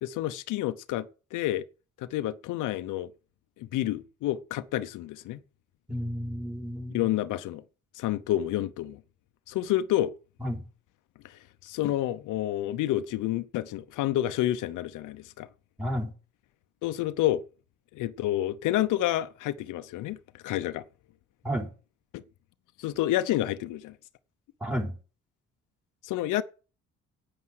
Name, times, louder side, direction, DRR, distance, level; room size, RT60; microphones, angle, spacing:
voice 1, 0.0-1.1 1.3-1.6 2.0-3.1 3.6-5.4 6.9-7.6 8.0-9.0 9.5-10.1 11.6-15.5 16.8-17.4 17.9-20.8 22.1-22.2 22.8-23.9 26.0-26.4, left 14 dB, 90° left, 0.8 m, -29 dB
voice 2, 5.9-7.1 10.4-10.7 15.8-16.1 21.4-21.7 24.6-25.0, equal, 5° right, 3.8 m, -32 dB
9.6 x 8.9 x 6.3 m
cardioid pair, 90°, 30 cm